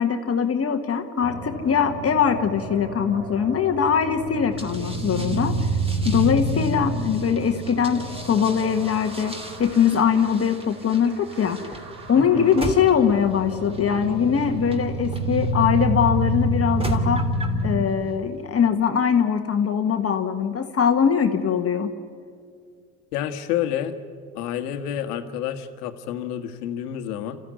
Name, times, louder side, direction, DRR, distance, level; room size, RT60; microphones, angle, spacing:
voice 1, 0.0-5.5 6.0-9.3 9.6-11.6 12.1-17.3 17.6-21.9, left 7 dB, 30° left, 6 dB, 1.7 m, -22 dB
sound 1, 1.2-10.7 10.9-17.9, right 1 dB, 50° right, 2.5 m, -29 dB
sound 2, 4.6-15.8 16.5-17.6, right 1 dB, 10° right, 3.0 m, -39 dB
voice 2, 12.2-12.5 23.1-23.9 24.3-27.4, left 10 dB, 75° left, 8 dB, 1.7 m, -29 dB
28.5 x 14.5 x 9.7 m, 2.2 s
hypercardioid pair, 80°, 47 cm